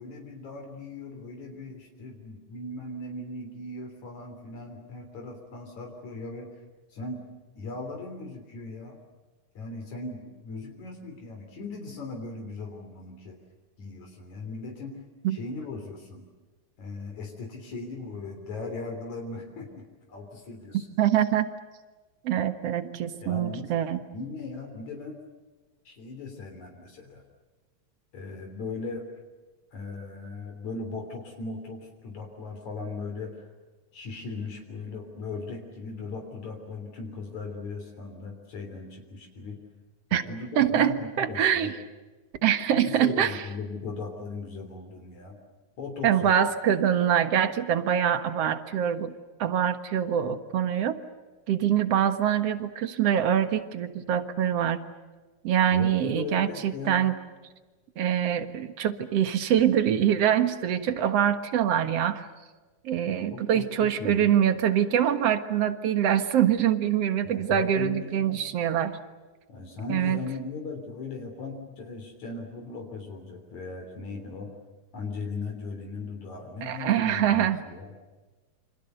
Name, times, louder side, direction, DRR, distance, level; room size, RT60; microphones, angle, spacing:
voice 1, 0.0-6.5 6.9-7.2 7.5-9.0 9.5-13.4 13.8-15.0 15.3-16.2 16.8-20.9 23.2-23.6 24.1-25.1 25.8-27.2 28.1-29.1 29.7-33.5 33.9-39.6 40.1-41.7 42.7-45.4 45.8-46.3 55.7-57.0 63.3-64.3 67.2-68.4 69.5-74.5 74.9-77.9, left 3 dB, 70° left, 3 dB, 4.7 m, -38 dB
voice 2, 21.0-21.5 22.2-24.0 40.1-40.2 40.6-41.8 42.4-43.4 46.0-49.1 49.4-51.0 51.5-54.8 55.4-57.1 58.0-62.3 62.8-69.0 69.9-70.2 76.6-77.6, right 10 dB, 60° right, 10 dB, 2.4 m, -24 dB
28.5 x 27.0 x 6.8 m, 1.3 s
omnidirectional pair, 3.4 m